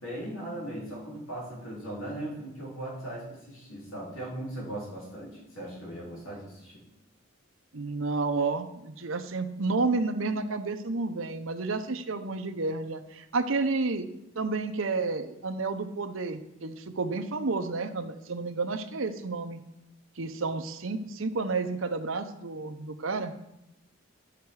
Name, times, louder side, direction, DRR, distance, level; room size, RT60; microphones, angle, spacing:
voice 1, 0.0-6.8, right 1 dB, 85° left, -5 dB, 4.2 m, -38 dB
voice 2, 7.7-14.1 14.4-19.6 20.2-23.3, right 3 dB, 75° right, 8 dB, 0.8 m, -31 dB
13.5 x 5.8 x 4.8 m, 0.85 s
head